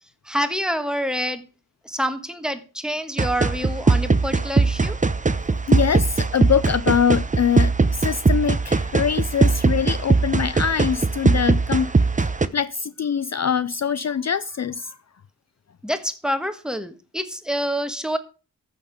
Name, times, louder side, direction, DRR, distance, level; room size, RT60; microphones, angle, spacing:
voice 1, 0.2-1.4 1.8-5.0 15.8-18.2, equal, ahead, 1.4 m, -27 dB
sound 1, 3.2-12.5, right 3 dB, 20° right, 0.7 m, -20 dB
voice 2, 5.7-11.9 12.2-15.0, left 7 dB, 50° left, 0.5 m, -23 dB
14.5 x 6.6 x 5.1 m
wide cardioid pair, 105°, 35 cm